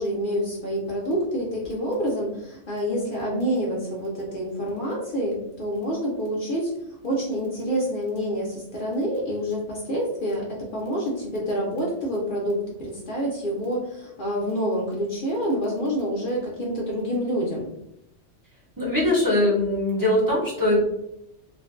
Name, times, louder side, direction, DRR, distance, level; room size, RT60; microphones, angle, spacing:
voice 1, 0.0-6.7 7.0-17.7, equal, 55° left, -3 dB, 0.6 m, -27 dB
voice 2, 18.8-20.8, left 1 dB, 25° right, -7 dB, 0.6 m, -21 dB
2.5 x 2.1 x 2.4 m, 0.84 s
omnidirectional pair, 1.2 m